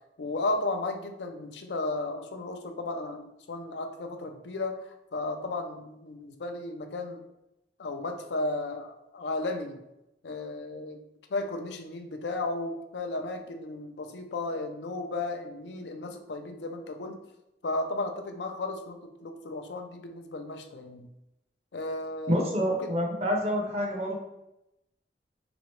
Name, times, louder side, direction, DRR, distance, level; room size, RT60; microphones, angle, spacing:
voice 1, 0.2-7.3 7.8-9.8 10.2-11.0 11.3-17.2 17.6-21.1 21.7-22.9, left 2 dB, 75° left, 5 dB, 0.5 m, -34 dB
voice 2, 22.3-24.2, equal, 35° right, 0 dB, 0.7 m, -27 dB
3.8 x 3.0 x 3.1 m, 0.88 s
head